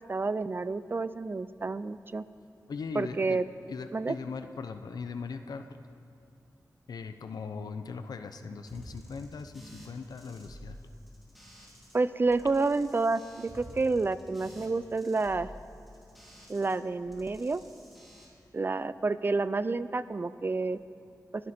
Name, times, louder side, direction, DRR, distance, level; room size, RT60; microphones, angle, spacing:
voice 1, 0.1-2.2 2.9-3.4 3.9-4.2 11.9-15.5 16.5-17.6 18.5-20.8, right 3 dB, 35° right, 15 dB, 0.5 m, -29 dB
voice 2, 2.7-3.4 3.7-5.8 6.9-10.8, left 5 dB, 90° left, 8 dB, 0.8 m, -39 dB
sound 1, 8.7-12.0 12.2-16.8 17.0-18.3, equal, ahead, 3.4 m, -50 dB
29.5 x 11.0 x 4.4 m, 2.5 s
wide cardioid pair, 115°, 7 cm